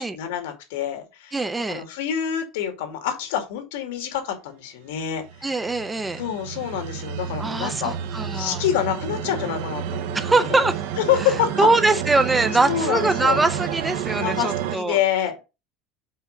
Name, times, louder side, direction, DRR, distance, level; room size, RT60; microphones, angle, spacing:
voice 1, 0.0-5.7 6.2-7.9 8.3-10.7 11.1-11.7 12.7-13.4 14.2-15.4, left 10 dB, 90° left, 2.3 m, -27 dB
voice 2, 1.3-1.8 5.4-6.2 7.4-8.6 10.1-10.8 11.6-15.0, right 3 dB, 5° right, 0.5 m, -22 dB
sound 1, 5.1-14.8, right 9 dB, 60° right, 0.8 m, -30 dB
5.6 x 4.9 x 6.5 m
cardioid pair, 180°, 0 cm